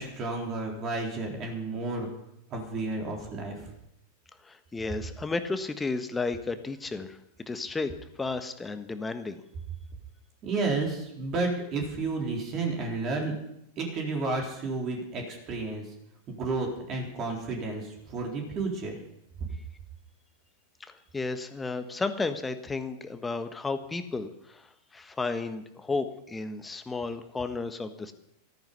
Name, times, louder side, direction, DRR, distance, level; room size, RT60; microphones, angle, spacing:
voice 1, 0.0-2.1 2.5-3.7 10.4-13.3 13.8-15.9 16.3-19.0, right 3 dB, 35° right, 0 dB, 4.0 m, -31 dB
voice 2, 4.4-7.9 8.2-9.4 20.8-28.1, left 3 dB, 10° left, 9 dB, 1.4 m, -33 dB
14.5 x 14.0 x 5.6 m, 0.78 s
figure-of-eight pair, 90°, 0 cm